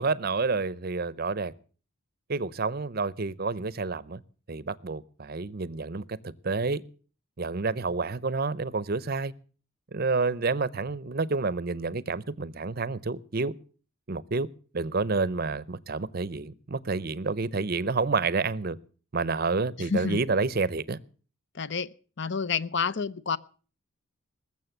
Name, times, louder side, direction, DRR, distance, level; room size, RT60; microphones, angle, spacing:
voice 1, 0.0-1.5 2.3-4.2 4.5-6.8 7.4-9.3 9.9-13.5 14.1-14.5 14.7-18.8 19.1-21.0, right 4 dB, 45° right, 0.6 m, -29 dB
voice 2, 19.8-20.2 21.5-21.9 22.2-23.4, left 5 dB, 55° left, 0.7 m, -29 dB
20.5 x 7.5 x 7.9 m
head